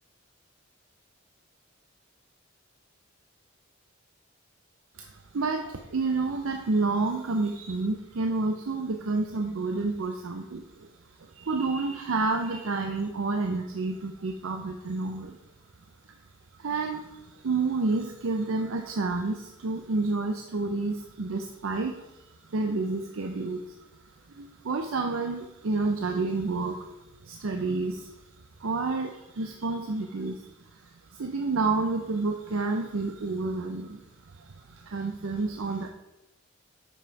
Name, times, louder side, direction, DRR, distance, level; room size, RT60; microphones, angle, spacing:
voice 1, 5.0-10.9 11.2-15.4 16.6-23.8 24.3-28.2 28.6-34.0 34.3-35.9, right 3 dB, 75° right, 4 dB, 0.6 m, -30 dB
7.6 x 5.4 x 4.6 m, 0.97 s
head